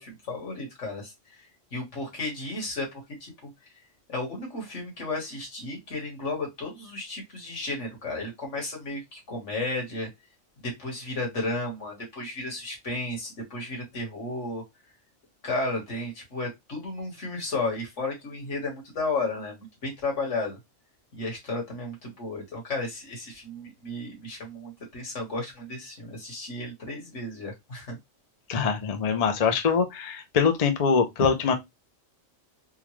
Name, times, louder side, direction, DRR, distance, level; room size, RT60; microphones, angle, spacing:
voice 1, 0.0-1.5 1.7-3.5 4.1-10.1 10.6-14.6 15.4-20.6 21.2-28.0, left 2 dB, 65° left, 1.8 m, -33 dB
voice 2, 28.5-31.5, left 6 dB, 45° left, 0.5 m, -23 dB
3.7 x 2.3 x 3.0 m
omnidirectional pair, 1.3 m